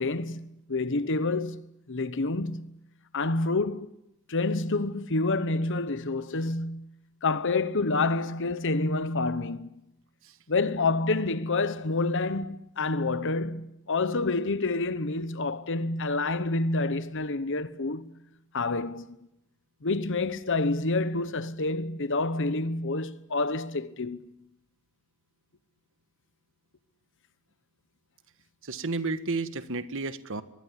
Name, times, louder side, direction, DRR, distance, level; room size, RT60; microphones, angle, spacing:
voice 1, 0.0-1.6 1.9-2.7 3.1-3.9 4.3-6.8 7.2-9.7 10.5-18.1 18.5-19.1 19.8-24.3, left 3 dB, 60° left, 1.1 m, -28 dB
voice 2, 28.6-30.4, right 3 dB, 60° right, 1.5 m, -31 dB
24.5 x 21.5 x 9.9 m
head